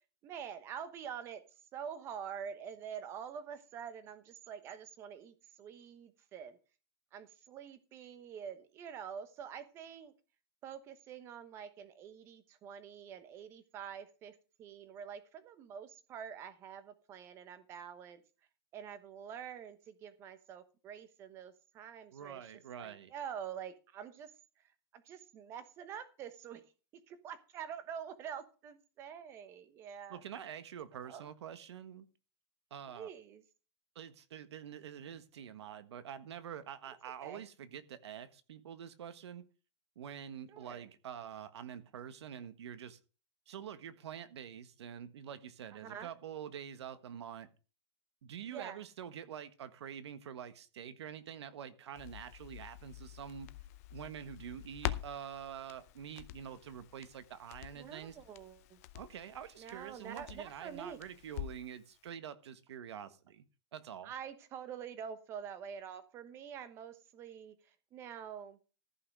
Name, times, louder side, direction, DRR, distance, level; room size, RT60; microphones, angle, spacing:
voice 1, 0.2-1.4 1.7-6.6 7.1-10.1 10.6-18.2 18.7-22.5 22.8-24.3 24.9-26.6 27.1-30.2 31.0-31.3 32.9-33.4 37.2-37.4 40.5-40.9 45.7-46.1 48.5-48.8 57.7-58.8 59.6-61.0 64.0-67.5 67.9-68.6, right 8 dB, 20° right, 1.1 m, -46 dB
voice 2, 22.1-23.1 30.1-32.1 32.7-33.1 33.9-39.4 39.9-43.0 43.5-47.5 48.2-53.5 53.9-58.2 58.9-63.4 63.7-64.1, right 9 dB, 75° right, 1.5 m, -46 dB
Crackle, 52.0-61.8 62.1-62.2, left 15 dB, 35° left, 0.7 m, -46 dB
14.5 x 5.9 x 6.2 m
supercardioid pair, 180°, 14 cm